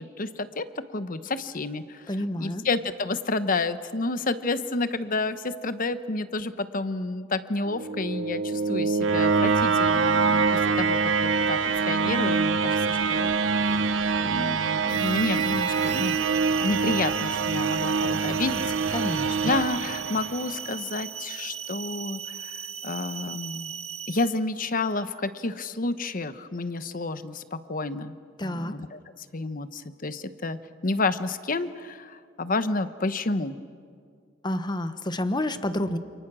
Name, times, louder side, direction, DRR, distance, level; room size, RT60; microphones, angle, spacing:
voice 1, 0.0-13.6 14.2-16.2 16.6-19.2 19.4-23.7 24.1-33.6, left 3 dB, 45° left, 12 dB, 1.0 m, -30 dB
voice 2, 2.1-2.6 18.9-19.6 28.4-28.7 34.4-36.0, left 1 dB, 25° left, 11 dB, 1.1 m, -29 dB
sound 1, 7.7-20.7, right 5 dB, 75° right, 1.0 m, -25 dB
sound 2, 14.9-24.4, right 7 dB, 35° right, 0.7 m, -37 dB
28.5 x 28.5 x 6.3 m, 2.1 s
head